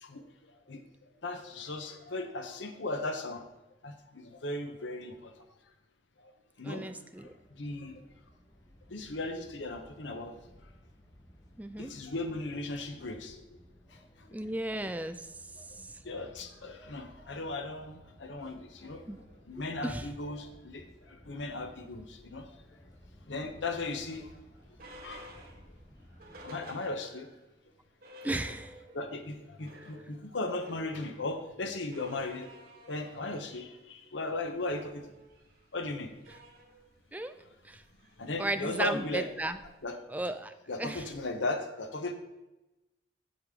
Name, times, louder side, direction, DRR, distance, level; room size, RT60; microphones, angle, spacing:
voice 1, 1.2-3.4 3.8-5.3 6.6-6.9 7.2-7.3 7.6-8.0 8.9-10.3 11.8-13.4 16.0-19.0 19.5-20.8 21.1-22.5 23.3-24.3 25.0-25.3 26.4-27.3 28.9-32.5 32.9-35.0 35.7-36.1 38.2-39.3 39.8-40.0 40.7-42.1, left 2 dB, 85° left, 7 dB, 0.9 m, -37 dB
voice 2, 6.6-7.3 11.6-11.9 14.3-15.2 15.8-15.9 19.1-19.2 19.8-20.1 28.2-28.7 37.1-37.3 37.6-37.8 38.4-39.6 40.1-40.5 40.8-41.1, right 1 dB, 10° right, 9 dB, 0.4 m, -34 dB
sound 1, 7.2-26.5, equal, 20° left, 1.0 m, -57 dB
sound 2, 24.2-27.4 27.7-27.8 28.0-29.1 29.4-39.9, equal, 50° right, 1.9 m, -53 dB
8.4 x 7.8 x 3.7 m, 1.0 s
head